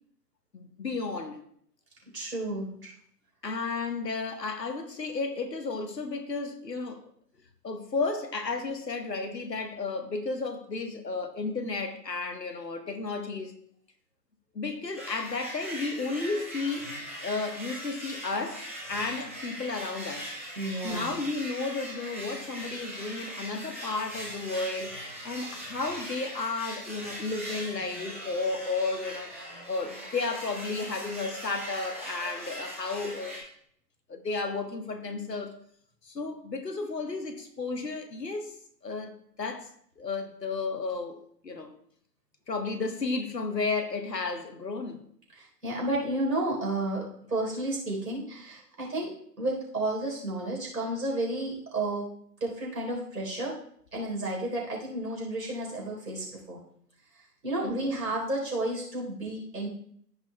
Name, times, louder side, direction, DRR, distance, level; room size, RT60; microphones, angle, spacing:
voice 1, 0.5-1.4 3.4-7.0 7.6-13.6 14.5-16.9 17.2-20.3 20.8-29.3 29.7-33.4 34.1-35.5 36.0-38.5 38.8-39.7 40.0-41.2 41.4-41.7 42.5-45.0 57.6-58.0, left 3 dB, 80° left, 1.4 m, -33 dB
voice 2, 2.1-2.9 20.6-21.2 45.3-49.1 49.4-52.1 52.4-53.5 53.9-56.6 57.4-59.7, right 1 dB, 75° right, 3.9 m, -32 dB
nails scratching sped up, 14.9-33.4, equal, 10° right, 0.5 m, -40 dB
15.0 x 5.9 x 2.2 m
figure-of-eight pair, 130°, 49 cm